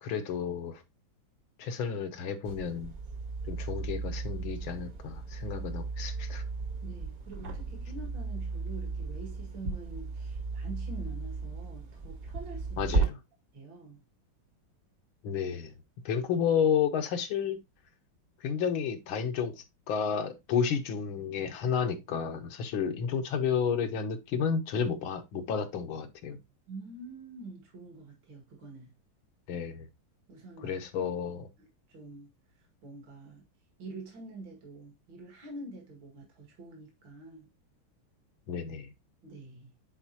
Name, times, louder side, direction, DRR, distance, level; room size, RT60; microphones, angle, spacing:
voice 1, 0.0-0.8 1.6-2.9 3.5-6.4 12.8-13.2 15.2-15.8 16.1-17.6 18.4-26.4 29.5-29.9 30.6-31.5 38.5-38.9, left 7 dB, 80° left, 1.8 m, -31 dB
sound 1, 2.5-13.1, right 4 dB, 45° right, 1.6 m, -35 dB
voice 2, 6.8-12.9 13.5-14.0 26.7-28.9 30.3-30.8 31.6-32.3 32.8-33.4 33.8-37.5 39.2-39.7, right 2 dB, 65° right, 2.7 m, -46 dB
9.5 x 4.3 x 2.8 m
omnidirectional pair, 2.2 m